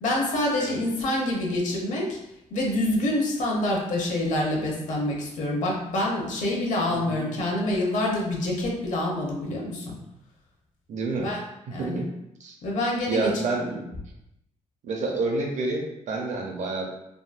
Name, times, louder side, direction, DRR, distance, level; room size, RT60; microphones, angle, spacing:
voice 1, 0.0-2.2 2.5-9.9 11.2-11.4 11.7-12.0 12.6-13.3, left 1 dB, 65° left, -2 dB, 0.8 m, -26 dB
voice 2, 6.9-7.3 10.9-11.3 11.7-12.1 12.4-12.5 13.1-13.8 14.8-16.9, right 3 dB, 65° right, 0 dB, 0.7 m, -29 dB
3.7 x 2.1 x 2.5 m, 0.83 s
cardioid pair, 115°, 13 cm